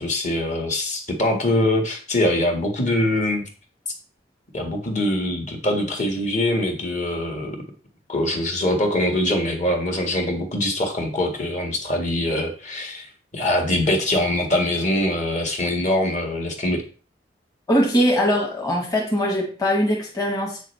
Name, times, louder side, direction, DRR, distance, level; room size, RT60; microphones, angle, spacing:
voice 1, 0.0-3.5 4.5-7.6 8.1-16.8, left 1 dB, 40° left, 2 dB, 1.8 m, -23 dB
voice 2, 17.7-20.6, equal, 20° left, -2 dB, 1.5 m, -21 dB
8.1 x 6.3 x 3.3 m, 0.36 s
head